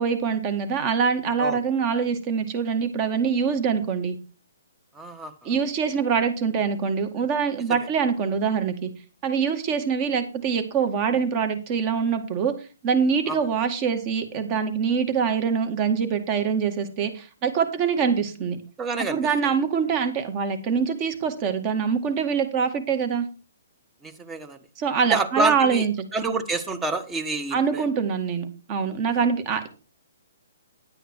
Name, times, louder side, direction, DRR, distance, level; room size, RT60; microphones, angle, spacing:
voice 1, 0.0-4.2 5.4-8.9 9.2-12.5 12.8-18.6 19.1-23.3 24.8-25.9 27.5-29.7, right 6 dB, 30° right, 8 dB, 2.1 m, -24 dB
voice 2, 4.9-5.5 7.7-7.8 13.3-13.4 18.8-19.5 24.0-24.6 25.1-25.9 26.1-27.8, right 3 dB, 10° right, 9 dB, 1.4 m, -28 dB
11.0 x 9.0 x 4.7 m, 0.33 s
hypercardioid pair, 145°, 0 cm